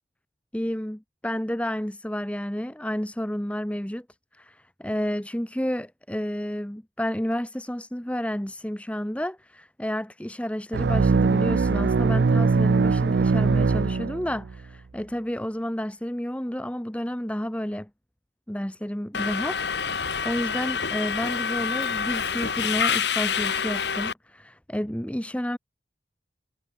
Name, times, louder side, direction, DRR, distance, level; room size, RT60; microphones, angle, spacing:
voice 1, 0.5-4.1 4.3-17.9 18.5-25.6, equal, 5° left, 1.0 m, -31 dB
sound 1, 10.7-14.6, right 4 dB, 65° right, 0.4 m, -21 dB
Subway metro underground, 19.1-24.1, left 6 dB, 70° left, 1.8 m, -27 dB
head